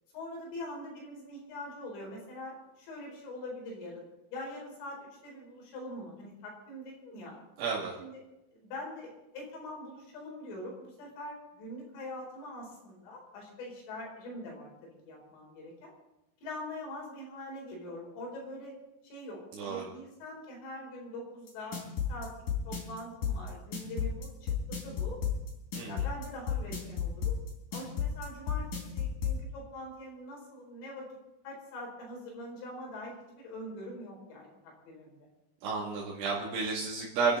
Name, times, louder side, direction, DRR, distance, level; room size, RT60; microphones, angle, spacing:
voice 1, 0.1-4.0 4.3-7.4 8.0-8.2 8.5-15.9 16.4-18.7 19.0-22.3 22.7-25.2 25.9-27.4 27.7-31.1 31.4-35.3, left 1 dB, 85° left, -1 dB, 6.9 m, -43 dB
voice 2, 7.6-7.9 19.5-19.9 25.8-26.1 35.6-37.4, right 4 dB, 75° right, -6 dB, 4.7 m, -32 dB
sound 1, 21.5-29.4, left 8 dB, 45° left, 5.0 m, -31 dB
29.0 x 11.0 x 4.0 m, 0.93 s
omnidirectional pair, 5.6 m